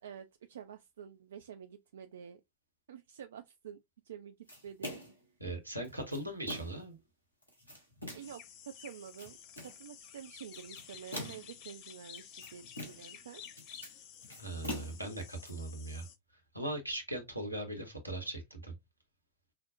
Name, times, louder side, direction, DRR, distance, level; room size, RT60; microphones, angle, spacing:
voice 1, 0.0-2.4 2.9-5.0 8.1-9.4 9.6-13.4, right 8 dB, 65° right, 0.3 m, -49 dB
sound 1, 4.5-5.2 5.8-6.9 7.4-8.4 8.9-9.8 10.5-11.6 12.1-13.2 13.4-15.5, left 1 dB, 85° left, 1.2 m, -44 dB
voice 2, 5.4-7.0 14.4-16.1 16.5-18.7, right 1 dB, 90° right, 1.0 m, -39 dB
sound 2, 8.2-16.2, left 9 dB, 45° left, 0.5 m, -52 dB
5.0 x 2.1 x 2.4 m
figure-of-eight pair, 90°, 0 cm